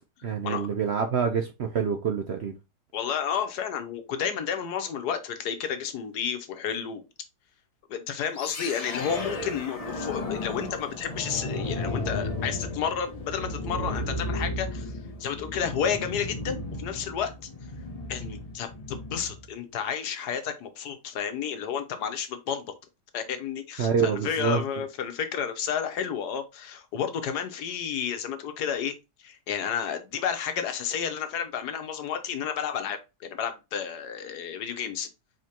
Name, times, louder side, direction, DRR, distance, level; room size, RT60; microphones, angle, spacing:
voice 1, 0.2-2.5 23.8-24.6, right 6 dB, 65° right, 0.6 m, -26 dB
voice 2, 2.9-7.0 7.9-14.9 15.2-17.3 18.1-22.7 23.1-35.1, left 8 dB, 80° left, 1.4 m, -31 dB
sound 1, 8.3-19.5, left 2 dB, 45° left, 0.4 m, -34 dB
5.0 x 3.7 x 2.8 m
omnidirectional pair, 1.7 m